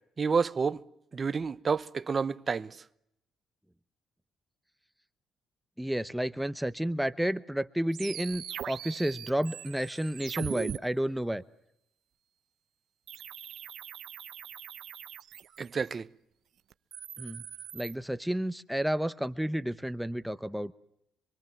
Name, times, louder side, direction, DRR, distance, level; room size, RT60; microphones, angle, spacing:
voice 1, 0.2-0.8 1.1-2.8 15.6-16.1, right 5 dB, 40° right, 0.9 m, -29 dB
voice 2, 5.8-11.4 17.2-17.4 17.7-20.7, right 1 dB, 5° right, 0.9 m, -31 dB
sound 1, 7.9-10.8 13.1-15.9 16.7-17.9, right 10 dB, 70° right, 0.9 m, -41 dB
27.0 x 23.5 x 7.3 m
cardioid pair, 90°, 0 cm